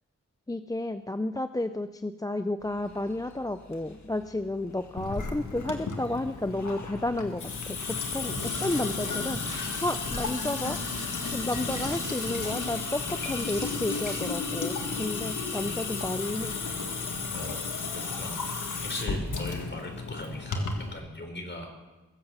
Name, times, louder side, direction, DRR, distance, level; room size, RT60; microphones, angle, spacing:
voice 1, 0.5-7.8 8.1-10.8 11.3-16.5, left 1 dB, 10° left, 10 dB, 0.5 m, -32 dB
Dog, 2.6-11.2, left 3 dB, 65° left, 1.9 m, -50 dB
Water tap faucet / Sink (filling or washing) / Drip, 5.0-20.9, left 4 dB, 80° left, 1.8 m, -33 dB
sound 1, 8.3-14.3, right 2 dB, 50° right, 4.2 m, -43 dB
voice 2, 17.3-17.7 18.2-18.3 18.8-21.7, left 1 dB, 35° left, 3 dB, 4.0 m, -39 dB
21.5 x 7.8 x 6.8 m, 1.1 s
wide cardioid pair, 80°, 30 cm